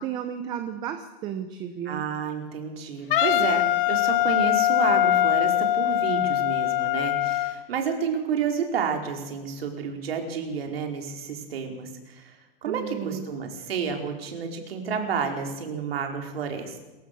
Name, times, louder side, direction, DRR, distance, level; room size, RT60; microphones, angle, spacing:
voice 1, 0.0-2.0 12.7-13.3, right 9 dB, 15° right, 9 dB, 0.7 m, -33 dB
voice 2, 1.8-16.8, right 6 dB, 75° right, 3 dB, 4.9 m, -30 dB
Wind instrument woodwind instrument, 3.1-7.6, left 13 dB, 60° left, 1.1 m, -22 dB
27.0 x 16.0 x 6.9 m, 1.1 s
supercardioid pair, 175°, 30 cm